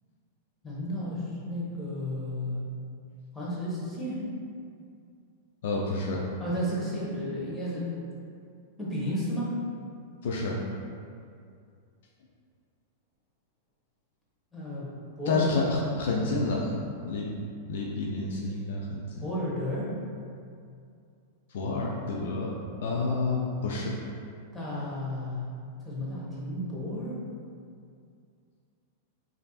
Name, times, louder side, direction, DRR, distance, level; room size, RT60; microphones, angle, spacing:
voice 1, 0.6-2.7 3.3-4.3 6.4-7.9 8.8-9.5 14.5-14.9 15.2-15.5 19.2-20.0 24.5-25.5 25.8-27.2, equal, 10° left, -8 dB, 1.3 m, -33 dB
voice 2, 5.6-6.2 10.2-10.6 15.3-16.7 17.0-17.3 17.7-19.2 21.5-22.5 22.8-23.9, left 3 dB, 60° left, -2 dB, 0.4 m, -29 dB
5.1 x 2.6 x 2.4 m, 2.4 s
figure-of-eight pair, 95°, 0 cm